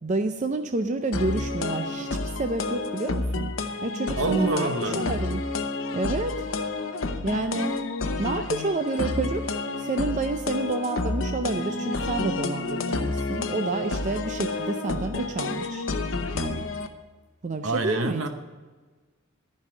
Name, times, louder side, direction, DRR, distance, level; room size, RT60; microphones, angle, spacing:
voice 1, 0.0-3.5 3.8-5.4 5.9-6.4 7.2-7.7 8.2-9.4 9.8-15.9 16.3-16.7 17.4-18.3, right 3 dB, 35° right, 7 dB, 0.5 m, -29 dB
sound 1, 1.1-16.9, left 3 dB, 65° left, 0.8 m, -30 dB
voice 2, 4.2-5.1 17.6-18.3, right 2 dB, 70° right, 7 dB, 1.1 m, -26 dB
14.0 x 5.5 x 9.3 m, 1.4 s
head